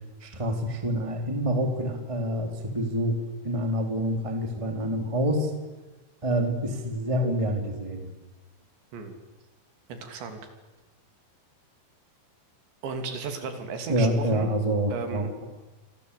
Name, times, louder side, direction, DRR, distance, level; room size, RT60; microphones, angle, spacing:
voice 1, 0.2-3.2 3.4-5.5 6.2-8.1 13.9-15.3, equal, 10° right, 5 dB, 2.5 m, -27 dB
voice 2, 9.9-10.4 12.8-14.5 14.9-15.3, right 5 dB, 70° right, 7 dB, 5.0 m, -35 dB
28.5 x 25.0 x 8.4 m, 1.2 s
omnidirectional pair, 5.5 m